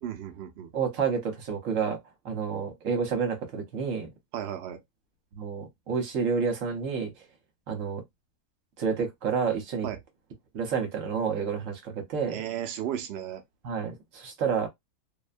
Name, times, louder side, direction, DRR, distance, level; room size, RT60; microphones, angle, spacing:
voice 1, 0.0-0.7 4.3-4.8 9.8-10.0 12.3-13.4, right 10 dB, 85° right, 0.5 m, -34 dB
voice 2, 0.7-2.0 2.2-4.1 5.3-7.1 7.7-8.0 8.8-9.9 10.5-12.4 13.6-14.7, right 6 dB, 60° right, 1.1 m, -29 dB
2.7 x 2.1 x 2.4 m
omnidirectional pair, 1.7 m